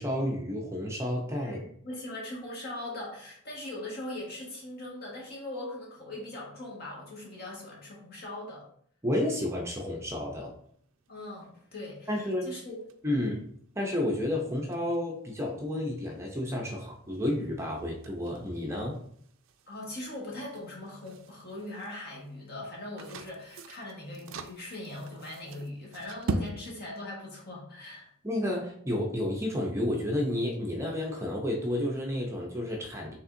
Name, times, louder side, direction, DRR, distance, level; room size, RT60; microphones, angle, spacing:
voice 1, 0.0-1.6 9.0-10.5 12.1-12.5 13.0-13.4 13.8-19.0 28.2-33.1, left 1 dB, 15° right, 0 dB, 0.6 m, -31 dB
voice 2, 1.4-8.7 11.1-12.2 12.4-12.8 13.1-13.4 19.7-28.1, left 1 dB, 50° left, -3 dB, 1.5 m, -40 dB
sound 1, 10.1-26.5, right 3 dB, 60° right, 0.4 m, -44 dB
5.3 x 3.5 x 2.6 m, 0.62 s
head